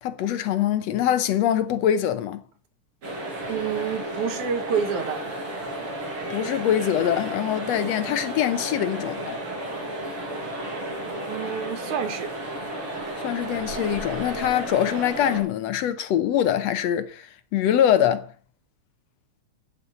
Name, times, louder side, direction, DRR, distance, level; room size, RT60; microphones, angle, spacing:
voice 1, 0.0-2.4 6.3-9.4 13.2-18.3, left 10 dB, 70° left, 1.8 m, -24 dB
sound 1, 3.0-15.4, right 1 dB, 45° right, 4.9 m, -33 dB
voice 2, 3.5-5.2 11.3-12.3, right 7 dB, 85° right, 2.9 m, -28 dB
9.2 x 8.3 x 6.9 m
omnidirectional pair, 3.4 m